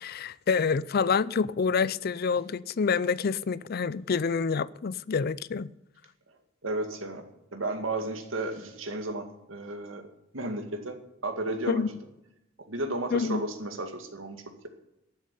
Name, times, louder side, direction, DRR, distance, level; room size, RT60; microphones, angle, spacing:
voice 1, 0.0-5.7 11.7-11.9 13.1-13.4, left 5 dB, 50° left, 0.5 m, -27 dB
voice 2, 6.6-7.2 7.5-10.1 10.3-11.0 11.2-12.0 12.7-14.7, right 2 dB, 90° right, 2.2 m, -33 dB
12.0 x 7.5 x 9.8 m
head